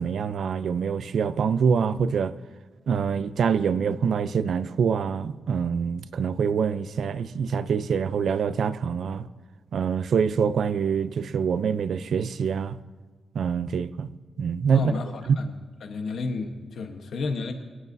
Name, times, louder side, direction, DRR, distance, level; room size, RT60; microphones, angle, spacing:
voice 1, 0.0-2.3 2.9-9.3 9.7-12.8 13.3-14.1 14.4-14.9 15.3-15.4, right 6 dB, 70° right, 0.5 m, -25 dB
voice 2, 14.7-15.5 15.8-17.5, left 3 dB, 75° left, 1.1 m, -32 dB
23.5 x 11.5 x 2.7 m
wide cardioid pair, 150°, 0 cm